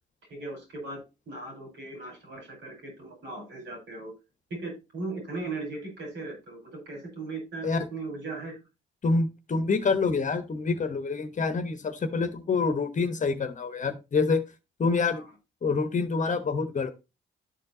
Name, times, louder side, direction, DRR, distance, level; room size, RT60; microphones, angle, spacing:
voice 1, 0.3-4.1 4.5-8.6 15.1-15.3, right 3 dB, 70° right, 4.9 m, -38 dB
voice 2, 9.0-14.4 14.8-15.2 15.6-16.9, left 4 dB, 40° left, 1.1 m, -27 dB
11.5 x 4.5 x 2.7 m
cardioid pair, 90°, 20 cm